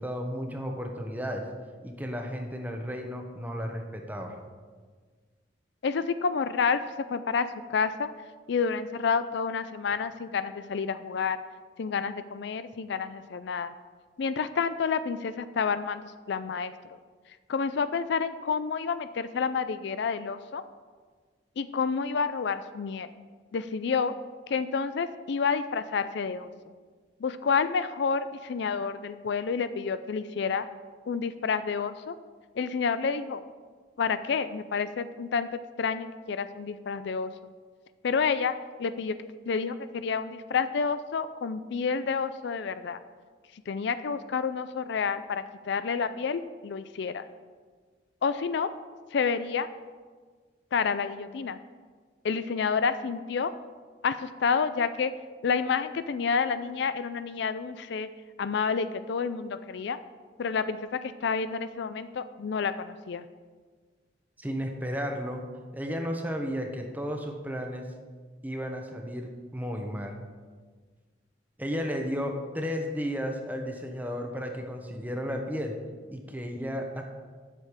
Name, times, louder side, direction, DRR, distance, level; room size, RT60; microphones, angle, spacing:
voice 1, 0.0-1.5 1.8-4.4 64.4-65.5 65.7-67.8 68.4-70.2 71.6-75.8 76.1-77.0, equal, 10° right, 3 dB, 1.0 m, -33 dB
voice 2, 5.8-6.8 7.1-8.1 8.5-11.4 11.8-13.7 14.2-16.7 17.5-20.6 21.6-23.1 23.5-24.1 24.5-26.5 27.2-30.7 31.1-32.1 32.6-33.4 34.0-37.3 38.0-38.5 38.8-39.1 39.4-43.0 43.7-47.2 48.2-48.7 49.1-49.7 50.7-51.6 52.2-53.5 54.0-55.1 55.4-58.1 58.4-60.0 60.4-63.2, left 5 dB, 65° left, 12 dB, 0.4 m, -29 dB
8.1 x 6.6 x 7.2 m, 1.5 s
head